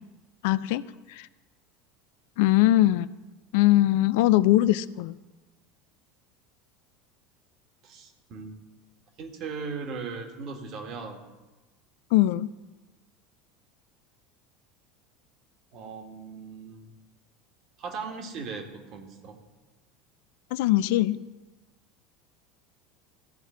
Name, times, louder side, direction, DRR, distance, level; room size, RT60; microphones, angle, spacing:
voice 1, 0.4-0.8 1.1-1.3 2.4-3.1 3.5-5.2 12.1-12.5 20.5-21.2, left 15 dB, 55° left, 16 dB, 0.4 m, -21 dB
voice 2, 7.8-8.6 9.2-11.3 15.7-16.9 17.8-19.4, right 5 dB, 45° right, 4 dB, 2.0 m, -38 dB
15.5 x 5.5 x 8.1 m, 1.2 s
figure-of-eight pair, 70°, 0 cm